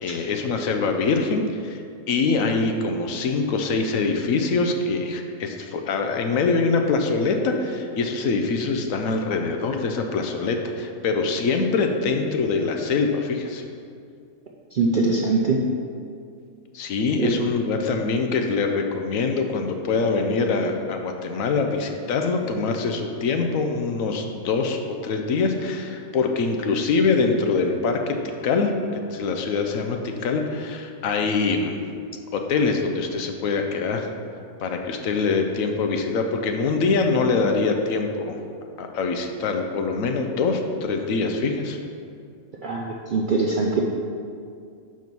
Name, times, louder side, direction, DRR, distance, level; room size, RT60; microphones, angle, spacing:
voice 1, 0.0-1.8 2.1-13.6 16.7-28.2 28.4-28.7 29.1-31.8 32.3-34.1 34.6-38.4 38.8-41.8, left 4 dB, 75° left, 4 dB, 1.0 m, -24 dB
voice 2, 14.7-15.6 17.2-17.3 42.6-43.8, right 3 dB, 70° right, -1 dB, 0.4 m, -22 dB
6.0 x 5.0 x 5.3 m, 2.4 s
omnidirectional pair, 1.5 m